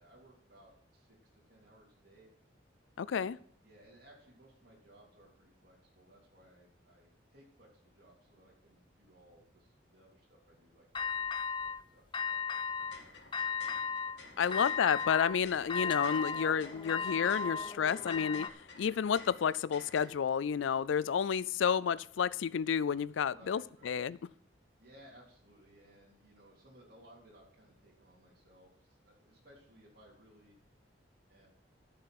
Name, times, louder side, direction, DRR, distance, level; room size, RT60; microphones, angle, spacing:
voice 1, 0.0-2.3 3.6-11.3 11.6-12.9 14.4-14.6 15.0-15.1 23.3-23.9 24.8-30.6 31.3-31.5, right 1 dB, 55° right, 3.2 m, -61 dB
voice 2, 3.0-3.4 14.4-18.5 18.8-24.2, left 7 dB, 85° left, 0.4 m, -30 dB
sound 1, 10.9-11.8 12.1-13.0 13.3-14.2 14.5-18.5, left 6 dB, 25° left, 0.4 m, -36 dB
sound 2, 12.7-20.1, left 3 dB, 70° left, 2.1 m, -53 dB
12.5 x 5.6 x 6.0 m
head